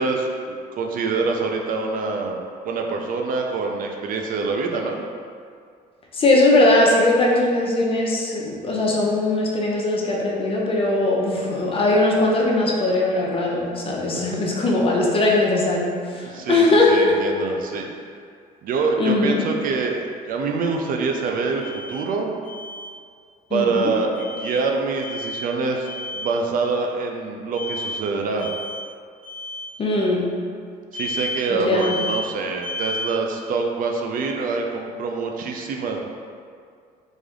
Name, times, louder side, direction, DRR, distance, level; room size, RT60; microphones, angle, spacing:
voice 1, 0.0-2.4 2.6-5.0 14.1-14.3 16.2-17.9 18.6-20.0 20.3-21.6 21.9-22.3 23.5-25.9 26.1-28.5 30.9-36.0, right 4 dB, 55° right, 1 dB, 0.4 m, -25 dB
voice 2, 6.1-17.2 19.0-19.4 23.5-23.9 29.8-30.3 31.5-32.0, left 2 dB, 35° left, -3 dB, 0.6 m, -20 dB
Alarm, 21.6-22.0 22.4-22.9 24.1-24.6 25.0-25.5 25.8-26.3 27.5-28.0 28.4-28.9 29.2-29.7 30.9-31.4 31.8-32.3 32.6-33.1, left 2 dB, 5° right, 1.0 m, -31 dB
3.3 x 2.6 x 3.6 m, 2.2 s
cardioid pair, 110°, 17 cm